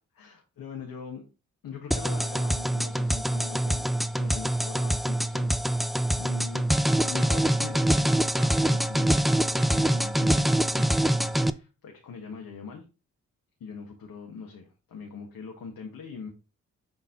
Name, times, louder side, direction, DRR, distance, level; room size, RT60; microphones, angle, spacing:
voice 1, 0.1-1.3 1.6-3.9 4.1-5.8 6.2-6.7 7.0-12.9 13.6-16.3, left 5 dB, 60° left, 1 dB, 1.7 m, -42 dB
sound 1, 1.9-11.5, right 1 dB, ahead, 0.4 m, -25 dB
7.1 x 4.0 x 4.0 m, 0.31 s
hypercardioid pair, 40°, 40 cm